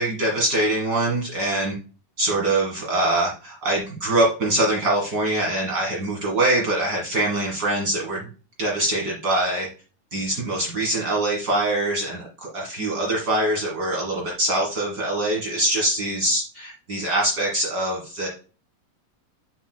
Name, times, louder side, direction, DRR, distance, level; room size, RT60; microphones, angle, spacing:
voice 1, 0.0-1.7 2.2-8.3 8.6-9.7 10.1-18.3, right 1 dB, 45° right, -3 dB, 1.4 m, -23 dB
6.9 x 6.1 x 2.2 m, 0.35 s
omnidirectional pair, 4.0 m